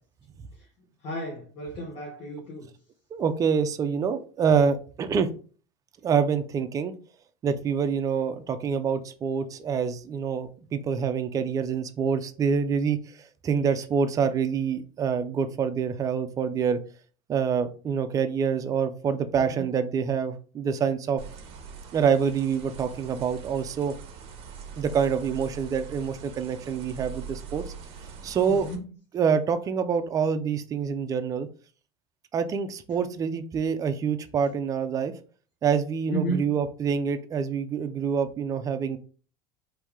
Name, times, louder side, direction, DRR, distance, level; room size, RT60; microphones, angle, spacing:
voice 1, 1.0-2.7 19.5-19.7 28.5-28.8 36.1-36.5, right 1 dB, 40° left, 1.1 m, -33 dB
voice 2, 3.1-5.3 6.0-6.9 7.4-16.8 17.3-21.2 21.9-23.9 24.8-27.6 28.2-28.7 29.1-31.5 32.3-35.1 35.6-39.0, right 6 dB, 25° right, 0.4 m, -26 dB
sound 1, 21.2-28.8, right 6 dB, 40° right, 0.9 m, -42 dB
4.6 x 2.7 x 3.6 m
cardioid pair, 160°, 15 cm